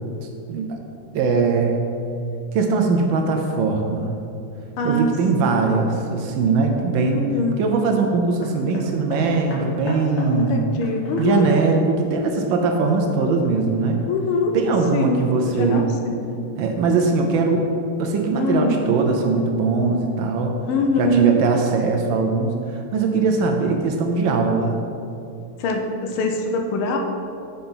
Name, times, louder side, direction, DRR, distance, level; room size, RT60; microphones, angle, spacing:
voice 1, 1.1-1.9 2.5-4.2 4.8-7.2 7.6-10.6 11.2-14.0 14.5-15.8 16.6-17.7 18.0-20.6 21.0-24.8, right 4 dB, 75° right, 3 dB, 1.2 m, -21 dB
voice 2, 4.8-5.1 5.4-5.7 7.2-7.7 10.3-11.4 14.1-14.6 14.9-16.2 18.3-18.9 20.7-21.4 25.6-27.0, left 1 dB, 85° left, 3 dB, 1.5 m, -23 dB
Hammer, 8.4-13.2 14.0-14.1, left 1 dB, 65° left, 1.7 m, -39 dB
5.7 x 3.9 x 5.5 m, 2.6 s
omnidirectional pair, 2.3 m